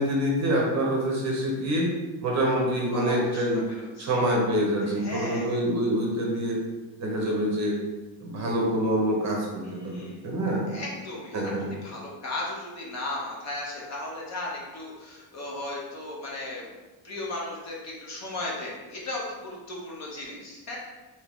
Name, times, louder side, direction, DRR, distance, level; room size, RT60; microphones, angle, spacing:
voice 1, 0.0-1.9 2.2-3.6 4.0-6.6 7.0-7.8 8.2-10.7 11.3-11.7, equal, 35° right, -2 dB, 0.8 m, -26 dB
voice 2, 2.9-4.1 4.9-5.5 9.6-10.3 10.7-11.5 11.8-16.7 17.0-20.8, left 2 dB, 35° left, -4 dB, 0.8 m, -36 dB
3.7 x 2.8 x 3.4 m, 1.2 s
cardioid pair, 160°, 48 cm